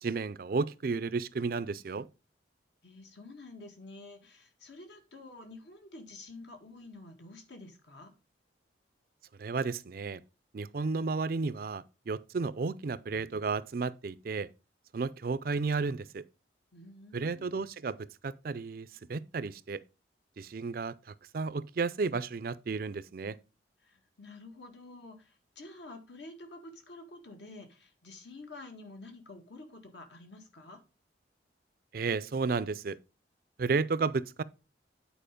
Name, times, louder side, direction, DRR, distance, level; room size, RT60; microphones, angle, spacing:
voice 1, 0.0-2.1 9.4-10.2 10.5-14.5 14.9-16.2 17.1-18.0 18.2-19.8 20.4-20.9 21.3-23.4 31.9-33.0 33.6-34.4, right 4 dB, 50° right, 0.4 m, -32 dB
voice 2, 2.8-8.1 16.7-17.6 23.8-30.8, left 2 dB, 70° left, 1.8 m, -49 dB
9.1 x 4.4 x 5.1 m
head